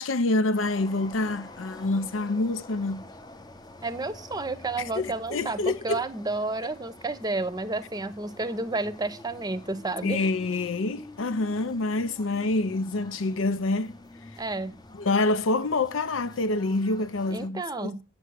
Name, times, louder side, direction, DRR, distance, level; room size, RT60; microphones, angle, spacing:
voice 1, 0.0-3.0 4.9-6.0 10.0-13.9 15.0-18.0, left 2 dB, 70° left, 0.6 m, -27 dB
sound 1, 0.5-17.5, left 2 dB, 20° left, 0.7 m, -47 dB
voice 2, 3.8-10.2 14.4-14.7 17.3-18.0, right 2 dB, 20° right, 0.8 m, -31 dB
9.1 x 7.0 x 6.3 m
head